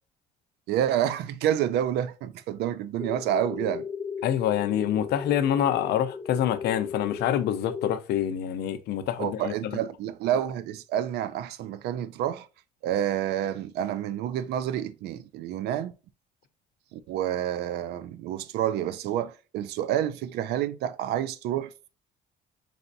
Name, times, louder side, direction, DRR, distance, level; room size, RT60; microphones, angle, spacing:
voice 1, 0.7-3.9 9.2-12.5 12.8-15.9 16.9-21.7, right 10 dB, 80° right, 0.4 m, -28 dB
sound 1, 3.0-8.0, left 6 dB, 10° left, 0.4 m, -36 dB
voice 2, 4.2-9.5, left 10 dB, 75° left, 0.5 m, -26 dB
4.1 x 3.3 x 2.6 m
cardioid pair, 110°, 17 cm